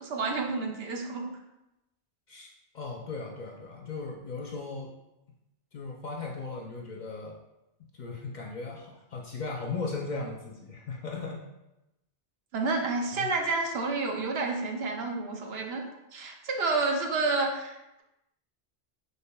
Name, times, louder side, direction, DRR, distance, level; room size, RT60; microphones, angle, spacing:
voice 1, 0.0-1.4 12.5-18.0, right 3 dB, 70° right, 2 dB, 0.8 m, -30 dB
voice 2, 2.7-4.9 5.7-7.4 7.9-11.4 13.2-13.3, left 4 dB, 55° left, 0 dB, 0.6 m, -37 dB
5.6 x 3.4 x 2.2 m, 0.94 s
omnidirectional pair, 1.1 m